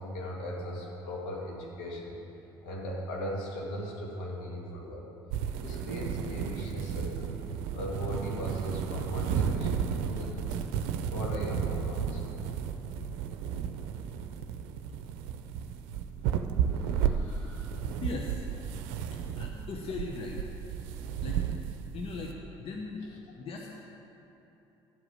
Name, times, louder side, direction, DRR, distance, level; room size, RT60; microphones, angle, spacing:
voice 1, 0.0-2.2 2.6-5.1 5.6-7.4 7.7-10.6 11.0-12.3 16.8-17.7 19.3-19.4 22.9-23.2, equal, 80° left, -3 dB, 2.1 m, -38 dB
sound 1, 5.3-22.3, right 8 dB, 75° right, 0.6 m, -33 dB
voice 2, 18.0-18.4 19.4-20.4 21.2-21.4 21.9-23.0 23.4-23.7, left 4 dB, 50° left, 0 dB, 1.0 m, -38 dB
11.5 x 5.0 x 8.3 m, 2.9 s
hypercardioid pair, 65°, 13 cm